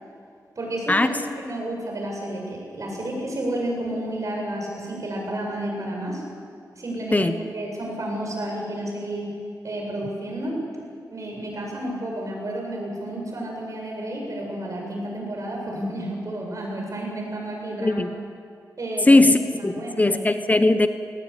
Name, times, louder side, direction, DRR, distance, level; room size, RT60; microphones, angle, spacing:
voice 1, 0.6-6.2 6.8-9.3 9.6-10.6 11.1-18.0 18.8-19.3 19.6-20.2, right 1 dB, 55° right, 0 dB, 7.8 m, -31 dB
voice 2, 19.0-20.9, left 2 dB, 25° left, 9 dB, 1.0 m, -18 dB
20.5 x 19.0 x 9.8 m, 2.3 s
wide cardioid pair, 90°, 7 cm